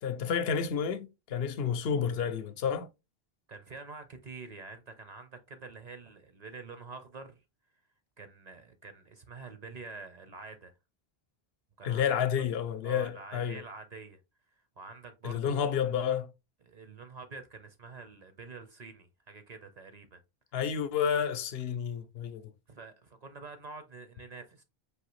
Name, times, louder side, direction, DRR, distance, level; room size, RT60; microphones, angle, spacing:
voice 1, 0.0-2.9 11.8-13.6 15.2-16.3 20.5-22.5, left 7 dB, 70° left, 0.8 m, -30 dB
voice 2, 3.5-7.4 8.2-10.7 11.8-12.4 12.8-14.2 14.8-15.6 16.6-20.2 22.7-24.6, right 4 dB, 50° right, 0.6 m, -47 dB
4.8 x 2.7 x 3.0 m
omnidirectional pair, 1.1 m